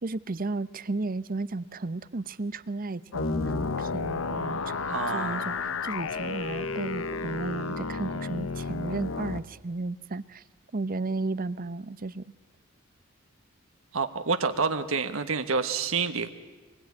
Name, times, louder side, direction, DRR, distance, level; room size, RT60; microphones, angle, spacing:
voice 1, 0.0-4.8 5.1-5.5 5.8-10.4 10.7-12.3, right 3 dB, 45° right, 16 dB, 0.7 m, -34 dB
sound 1, 3.1-9.4, left 4 dB, 75° left, 0.9 m, -32 dB
voice 2, 4.9-5.8 13.9-16.3, right 5 dB, 90° right, 8 dB, 1.2 m, -28 dB
25.0 x 21.0 x 9.7 m, 1.3 s
head